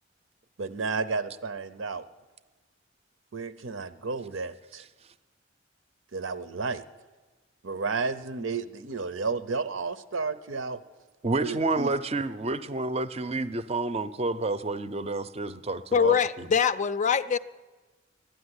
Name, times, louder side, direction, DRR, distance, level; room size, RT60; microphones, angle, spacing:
voice 1, 0.6-2.0 3.3-4.8 6.1-6.8 7.6-10.8 11.4-11.9, right 4 dB, 90° right, 0.7 m, -32 dB
voice 2, 11.2-16.5, right 3 dB, 30° right, 0.5 m, -29 dB
voice 3, 15.9-17.4, left 6 dB, 35° left, 0.4 m, -23 dB
12.0 x 10.0 x 9.7 m
head